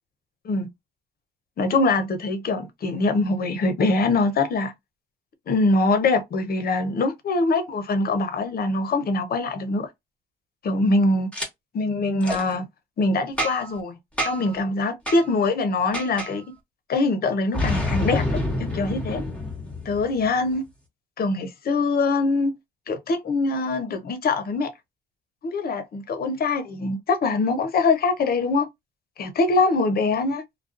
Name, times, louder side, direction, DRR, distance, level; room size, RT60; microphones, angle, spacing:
voice 1, 1.6-4.7 5.5-9.9 10.6-11.3 11.7-12.6 13.0-14.0 14.2-16.4 16.9-19.2 19.9-20.6 21.2-22.5 22.9-24.7 25.4-28.7 29.2-30.4, left 3 dB, 50° left, 0.7 m, -23 dB
Boom, 11.3-11.5 12.2-12.4 13.4-13.8 14.2-14.5 15.1-15.2 15.9-16.3 17.5-20.2, left 1 dB, 5° left, 1.1 m, -27 dB
2.4 x 2.2 x 2.4 m
cardioid pair, 90°, 20 cm